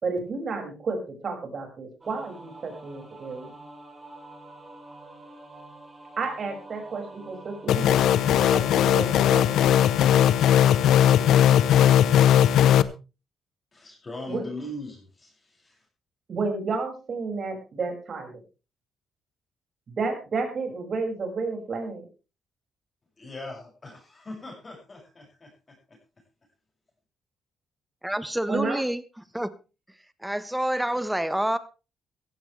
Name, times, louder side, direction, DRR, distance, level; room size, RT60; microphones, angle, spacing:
voice 1, 0.0-3.5 6.2-9.7 14.3-14.4 16.3-18.3 20.0-22.0 28.5-28.8, right 4 dB, 50° right, 6.3 m, -31 dB
sound 1, 2.0-10.1, right 2 dB, 25° right, 4.9 m, -47 dB
sound 2, 7.7-12.8, left 10 dB, 80° left, 0.8 m, -18 dB
voice 2, 13.7-15.9 23.2-26.0, left 2 dB, 30° left, 7.0 m, -40 dB
voice 3, 28.0-29.0 29.3-29.5 30.2-31.6, right 1 dB, 5° right, 1.2 m, -27 dB
16.0 x 15.0 x 3.4 m
cardioid pair, 90°, 0 cm